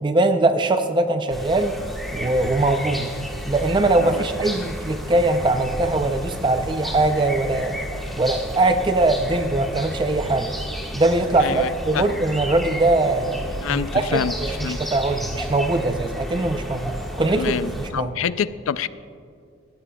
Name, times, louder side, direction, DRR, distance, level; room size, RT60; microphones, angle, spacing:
voice 1, 0.0-1.8 2.1-3.1 3.5-7.8 8.2-10.5 10.9-18.1, right 2 dB, 25° right, 8 dB, 0.4 m, -21 dB
sound 1, 1.3-17.9, equal, ahead, 1.4 m, -32 dB
voice 2, 11.4-12.2 13.6-14.3 14.6-14.8 17.4-18.9, left 7 dB, 85° left, 16 dB, 0.4 m, -27 dB
19.5 x 14.0 x 2.3 m, 2.3 s
head